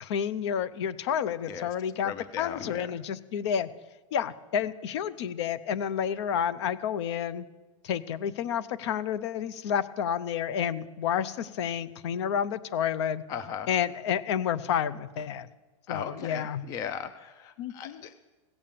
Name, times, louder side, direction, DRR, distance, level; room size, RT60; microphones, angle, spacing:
voice 1, 0.0-3.7 4.1-7.4 7.8-13.2 13.7-15.5 15.9-16.6 17.6-18.0, left 8 dB, 55° left, 18 dB, 0.6 m, -30 dB
voice 2, 2.0-3.0 13.3-13.7 15.9-18.1, left 8 dB, 20° left, 13 dB, 0.3 m, -37 dB
16.5 x 7.2 x 6.8 m, 1.2 s
supercardioid pair, 165°, 17 cm